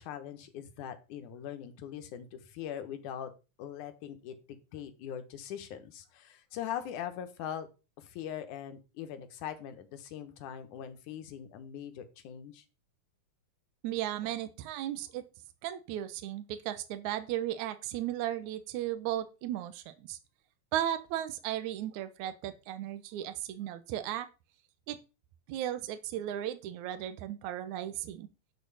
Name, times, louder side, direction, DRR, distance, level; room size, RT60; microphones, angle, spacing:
voice 1, 0.0-3.3 3.6-4.4 4.7-7.7 8.0-12.6, left 9 dB, 85° left, 10 dB, 2.7 m, -41 dB
voice 2, 13.8-15.2 15.6-20.2 20.7-24.3 24.9-25.0 25.5-28.3, right 12 dB, 80° right, 11 dB, 2.2 m, -35 dB
11.0 x 4.3 x 7.0 m, 0.30 s
omnidirectional pair, 3.5 m